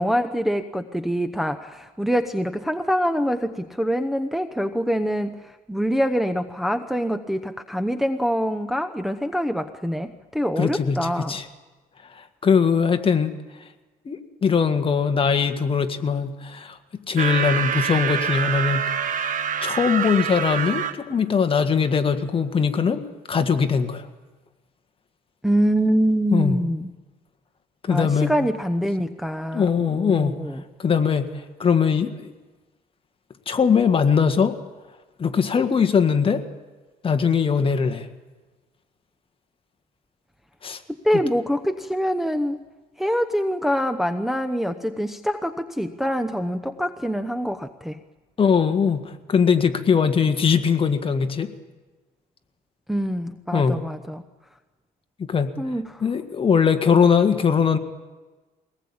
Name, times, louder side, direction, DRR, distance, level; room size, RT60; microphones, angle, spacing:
voice 1, 0.0-5.4 5.7-11.4 25.4-26.9 27.9-30.6 41.0-42.6 43.0-48.0 52.9-54.2 55.6-56.0, equal, ahead, 5 dB, 0.9 m, -25 dB
voice 2, 10.6-11.4 12.2-13.3 14.1-16.8 17.1-18.8 19.6-24.1 26.3-26.6 27.8-28.3 29.5-30.4 30.8-31.3 31.6-32.3 33.5-34.6 35.2-36.4 37.0-38.1 40.6-40.8 48.4-51.5 53.5-53.8 55.2-55.5 56.0-57.8, left 6 dB, 30° left, 8 dB, 1.8 m, -21 dB
sound 1, 17.2-20.9, right 7 dB, 50° right, 1.6 m, -26 dB
23.0 x 19.0 x 8.7 m, 1.2 s
cardioid pair, 110°, 17 cm